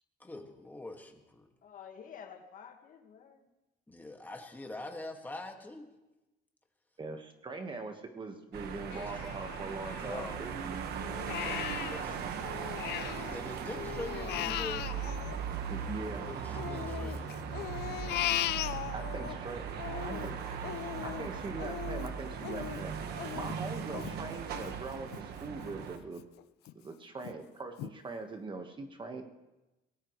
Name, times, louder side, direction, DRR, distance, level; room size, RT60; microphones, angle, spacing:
voice 1, 0.2-1.5 3.9-5.9 8.9-9.1 10.0-10.4 11.8-12.2 13.2-14.9 16.2-17.4, left 2 dB, 10° left, 3 dB, 2.0 m, -44 dB
voice 2, 1.6-3.5 10.0-10.3 10.8-11.4 11.7-12.2 19.6-21.5, left 7 dB, 50° left, 5 dB, 1.7 m, -51 dB
voice 3, 7.0-10.6 15.7-16.3 18.9-19.7 20.0-20.3 21.0-22.9 23.3-26.3 26.7-29.2, right 3 dB, 30° right, 5 dB, 1.5 m, -41 dB
sound 1, 8.5-26.0, right 7 dB, 70° right, 1.5 m, -38 dB
Crying sobbing, 8.9-10.6 11.0-13.4 13.7-16.1 16.5-19.3 19.7-25.2 25.6-25.7 26.2-26.7 27.2-27.3 27.8-27.9, left 14 dB, 75° left, 0.6 m, -38 dB
22.0 x 18.0 x 3.2 m, 1.0 s
cardioid pair, 110°, 17 cm